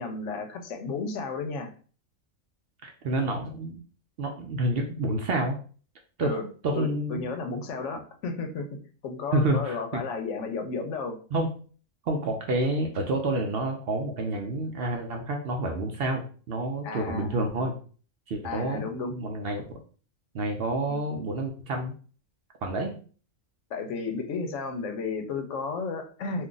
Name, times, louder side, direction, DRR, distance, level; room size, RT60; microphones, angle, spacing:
voice 1, 0.0-1.7 6.2-6.5 6.7-8.7 9.0-11.2 16.8-17.7 18.4-19.1 23.7-26.5, left 4 dB, 75° left, 6 dB, 0.9 m, -33 dB
voice 2, 2.8-3.8 4.2-5.6 6.2-6.3 6.6-7.3 9.3-10.0 11.3-11.5 12.1-17.7 18.3-19.8 20.3-21.9 22.6-23.0, right 2 dB, 65° right, 2 dB, 0.7 m, -29 dB
2.5 x 2.4 x 3.7 m, 0.41 s
omnidirectional pair, 1.3 m